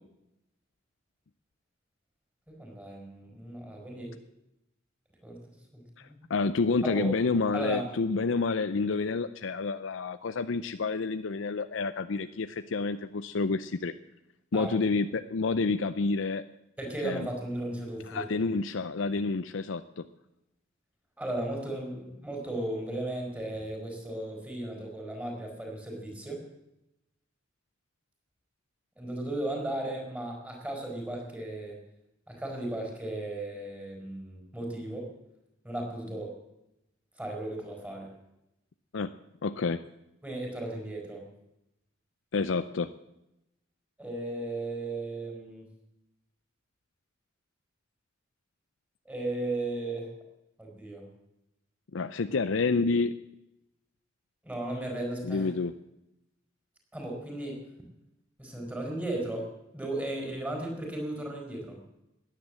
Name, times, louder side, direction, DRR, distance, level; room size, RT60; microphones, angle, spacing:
voice 1, 2.5-4.1 5.2-5.4 6.0-6.2 6.8-7.1 7.5-7.8 14.5-14.8 16.8-18.4 21.2-26.4 29.0-31.8 32.3-35.1 35.6-36.4 37.2-38.1 40.2-41.2 44.0-45.7 49.0-50.1 50.6-51.1 54.4-55.5 56.9-57.6 58.4-61.8, right 1 dB, 10° right, 1 dB, 4.5 m, -35 dB
voice 2, 6.0-13.9 14.5-16.4 17.0-17.3 18.1-20.0 38.9-39.1 39.4-39.8 42.3-42.9 51.9-53.1 55.2-55.7, left 4 dB, 70° left, 11 dB, 0.6 m, -29 dB
16.5 x 10.0 x 7.6 m, 0.89 s
head